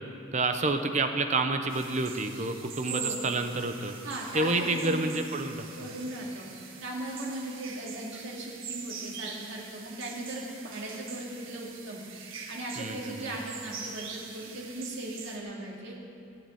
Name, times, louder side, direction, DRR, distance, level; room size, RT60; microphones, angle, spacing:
voice 1, 0.3-3.9 4.3-5.7 12.8-13.3, right 2 dB, 35° right, 6 dB, 0.8 m, -29 dB
sound 1, 1.7-15.4, right 6 dB, 80° right, 1.6 m, -43 dB
voice 2, 2.9-3.2 4.0-5.0 5.8-6.5 6.8-12.0 12.5-16.0, right 1 dB, 55° right, -3 dB, 2.7 m, -38 dB
15.0 x 8.0 x 8.6 m, 2.6 s
head